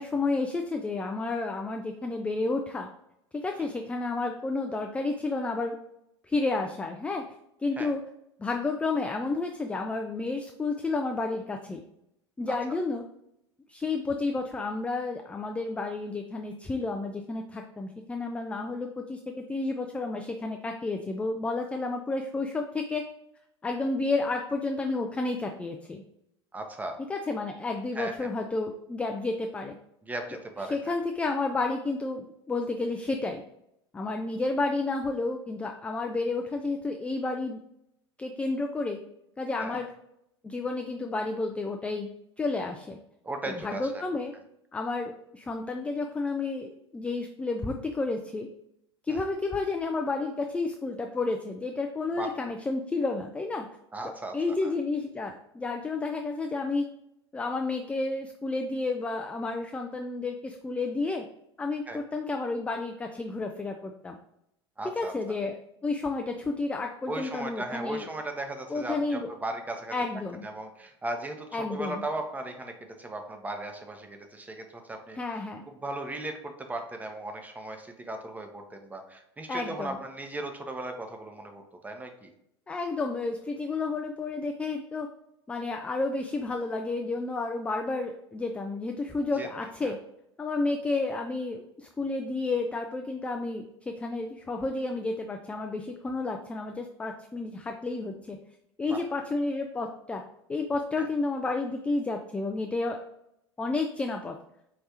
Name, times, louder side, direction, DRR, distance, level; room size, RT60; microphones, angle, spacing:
voice 1, 0.0-2.9 3.3-5.8 6.2-7.2 7.6-8.0 8.4-11.8 12.4-13.0 13.7-23.0 23.6-26.0 27.1-29.8 30.7-33.4 33.9-37.6 38.2-39.0 39.4-39.9 40.4-42.1 42.4-43.0 43.5-44.3 44.7-48.5 49.0-53.7 54.3-56.8 57.3-61.3 61.6-64.1 64.8-68.1 68.7-69.3 69.9-70.5 71.5-72.0 75.1-75.6 79.5-80.0 82.7-85.1 85.5-90.0 90.4-98.4 98.8-100.2 100.5-103.0 103.6-104.4, left 3 dB, 10° left, 4 dB, 0.3 m, -31 dB
voice 2, 26.5-27.0 27.9-28.3 30.1-30.8 39.6-39.8 43.2-44.0 49.1-49.2 52.2-52.3 53.9-54.4 54.6-54.7 61.9-62.0 64.8-65.1 67.1-70.0 70.4-75.2 75.7-82.3 89.4-89.5 89.8-89.9 98.9-99.0 101.0-101.1, right 2 dB, 10° right, 5 dB, 0.7 m, -37 dB
4.8 x 3.2 x 2.7 m, 0.79 s
figure-of-eight pair, 80°, 14 cm